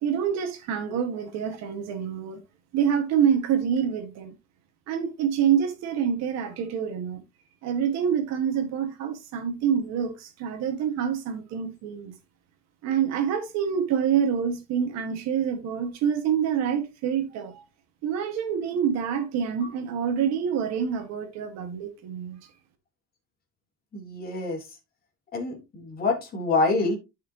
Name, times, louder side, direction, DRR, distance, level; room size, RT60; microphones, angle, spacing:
voice 1, 0.0-2.4 2.7-4.3 4.9-7.2 7.6-12.2 12.8-17.6 18.0-22.4, right 8 dB, 55° right, 1.8 m, -26 dB
voice 2, 23.9-24.7 25.3-27.0, left 3 dB, 30° left, 3.4 m, -26 dB
11.5 x 6.0 x 3.0 m
cardioid pair, 165°, 32 cm